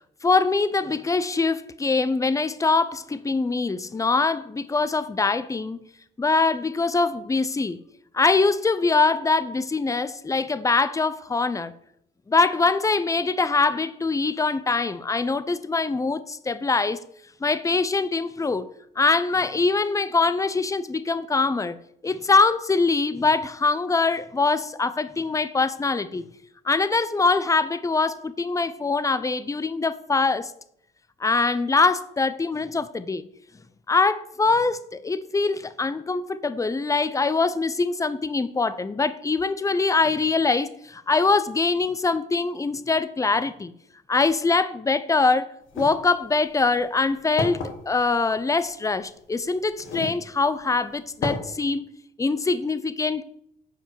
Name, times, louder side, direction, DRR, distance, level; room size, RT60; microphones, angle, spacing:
voice 1, 0.2-5.8 6.2-7.8 8.1-11.7 12.3-17.0 17.4-18.7 19.0-21.8 22.0-26.2 26.6-30.5 31.2-33.3 33.9-43.7 44.1-51.9 52.2-53.2, left 3 dB, 15° left, 0.6 m, -23 dB
sound 1, 45.7-45.9 46.7-46.8 47.4-47.7 48.9-49.0 49.8-50.2 50.6-50.7 51.2-51.4, left 3 dB, 85° left, 1.8 m, -29 dB
9.1 x 5.3 x 6.1 m
cardioid pair, 90°, 20 cm